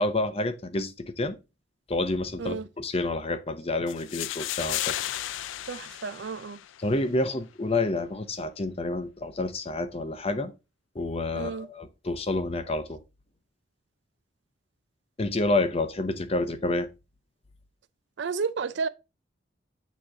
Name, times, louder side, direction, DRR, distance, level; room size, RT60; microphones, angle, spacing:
voice 1, 0.0-1.4 1.9-4.9 6.8-10.5 10.9-13.0 15.2-16.9, left 2 dB, 30° left, 0.7 m, -28 dB
sound 1, 3.9-6.9, left 13 dB, 80° left, 0.3 m, -34 dB
voice 2, 5.7-6.6 11.3-11.7 18.2-18.9, right 5 dB, 65° right, 0.4 m, -32 dB
8.8 x 3.1 x 3.9 m
head